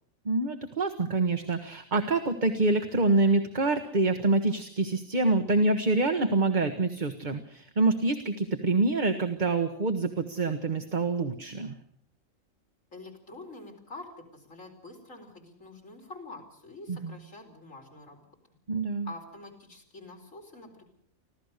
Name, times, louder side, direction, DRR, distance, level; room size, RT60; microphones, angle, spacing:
voice 1, 0.2-11.8 16.9-17.1 18.7-19.1, right 3 dB, 35° right, 7 dB, 1.3 m, -26 dB
voice 2, 12.9-18.2 19.0-20.8, left 2 dB, 70° left, 1 dB, 4.7 m, -46 dB
25.0 x 16.0 x 6.5 m, 0.64 s
omnidirectional pair, 1.4 m